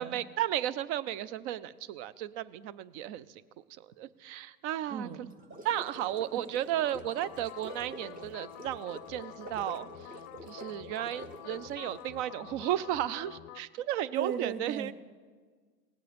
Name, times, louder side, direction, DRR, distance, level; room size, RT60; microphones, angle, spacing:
voice 1, 0.0-3.2 4.0-5.1 5.6-9.9 10.5-14.9, right 12 dB, 50° right, 18 dB, 0.6 m, -34 dB
voice 2, 4.9-5.4 6.3-6.4 14.1-14.9, right 7 dB, 80° right, 13 dB, 1.0 m, -37 dB
sound 1, 5.3-12.1, right 1 dB, 20° right, 0.8 m, -47 dB
sound 2, 6.7-13.6, left 13 dB, 35° left, 0.5 m, -48 dB
18.0 x 7.5 x 5.2 m, 1.5 s
hypercardioid pair, 115°, 44 cm